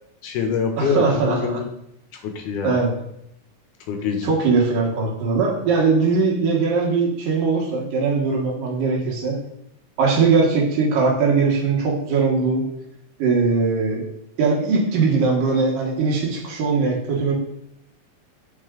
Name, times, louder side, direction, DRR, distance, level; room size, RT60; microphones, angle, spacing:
voice 1, 0.2-1.6 2.2-2.8 3.9-4.3, left 5 dB, 75° left, 4 dB, 2.2 m, -24 dB
voice 2, 0.8-1.6 2.6-2.9 4.2-9.4 10.0-12.6 13.2-14.0 14.4-17.3, right 4 dB, 75° right, -1 dB, 3.0 m, -20 dB
7.7 x 5.7 x 3.7 m, 0.77 s
omnidirectional pair, 3.9 m